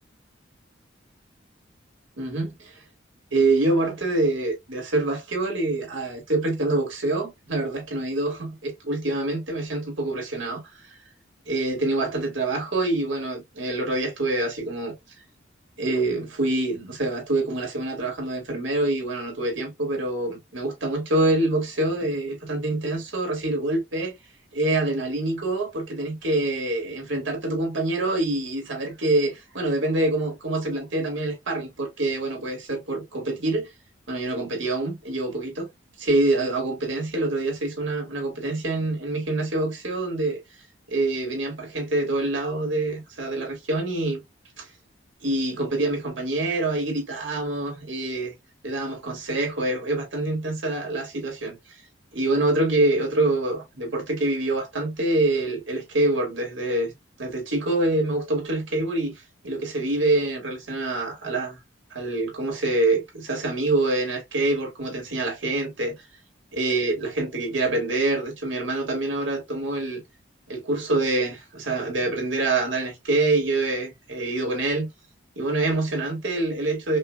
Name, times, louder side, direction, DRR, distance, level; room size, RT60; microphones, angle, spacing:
voice 1, 2.2-2.8 3.3-10.6 11.5-14.9 15.8-24.1 24.5-33.7 34.1-35.7 36.0-40.4 40.9-44.2 44.6-44.7 45.2-48.3 48.6-51.6 52.1-56.9 57.2-59.1 59.4-61.6 61.9-66.0 66.6-70.0 70.5-74.9 75.4-77.0, right 2 dB, 85° right, 2.1 m, -26 dB
5.4 x 2.5 x 2.2 m
head